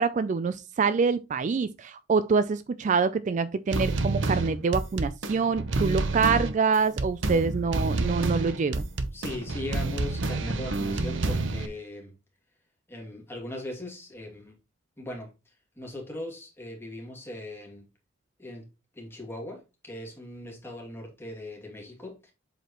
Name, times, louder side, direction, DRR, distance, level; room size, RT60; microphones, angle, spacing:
voice 1, 0.0-8.8, right 5 dB, 40° right, 0.3 m, -26 dB
sound 1, 3.7-11.7, right 2 dB, 70° right, 0.9 m, -28 dB
voice 2, 9.1-12.2 12.9-14.5 15.0-17.9 18.4-18.7 18.9-22.3, left 1 dB, 10° left, 2.5 m, -39 dB
7.7 x 5.0 x 3.0 m
head